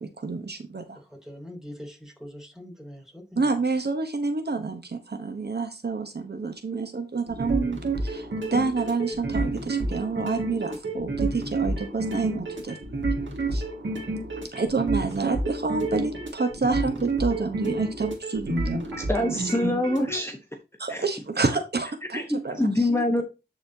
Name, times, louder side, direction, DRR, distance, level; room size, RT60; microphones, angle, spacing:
voice 1, 0.0-1.0 3.4-12.8 13.5-13.6 14.5-18.9 19.2-19.4 20.8-23.2, right 4 dB, 60° right, 1.0 m, -29 dB
voice 2, 1.1-3.5, equal, 5° right, 3.0 m, -42 dB
sound 1, 7.3-20.2, right 2 dB, 85° right, 2.0 m, -29 dB
voice 3, 19.1-20.4 20.9-21.0 22.1-23.2, left 1 dB, 15° left, 1.1 m, -25 dB
11.5 x 4.2 x 2.8 m
wide cardioid pair, 60°, 19 cm